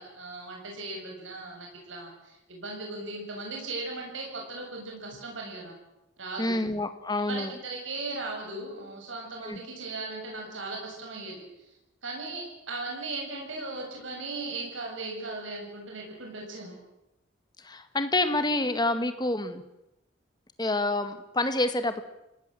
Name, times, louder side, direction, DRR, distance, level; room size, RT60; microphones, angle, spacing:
voice 1, 0.0-5.7 6.2-6.5 7.3-11.4 12.0-16.8, right 3 dB, 85° right, 0 dB, 7.2 m, -37 dB
voice 2, 6.4-7.5 9.4-9.6 17.6-19.6 20.6-22.0, left 2 dB, 20° left, 9 dB, 2.0 m, -28 dB
28.5 x 18.0 x 7.8 m, 0.89 s
head